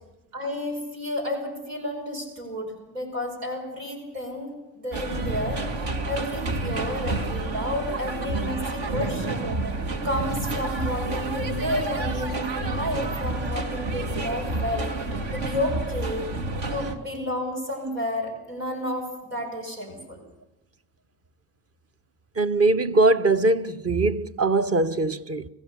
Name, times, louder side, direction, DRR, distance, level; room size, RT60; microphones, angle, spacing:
voice 1, 0.3-9.5 10.0-14.9 15.3-16.3 16.7-20.2, left 1 dB, 85° right, 5.4 m, -31 dB
sound 1, 4.9-17.0, right 2 dB, 65° right, 2.2 m, -29 dB
voice 2, 22.4-25.5, right 2 dB, 30° right, 1.0 m, -21 dB
25.5 x 15.5 x 6.8 m
hypercardioid pair, 55°, 47 cm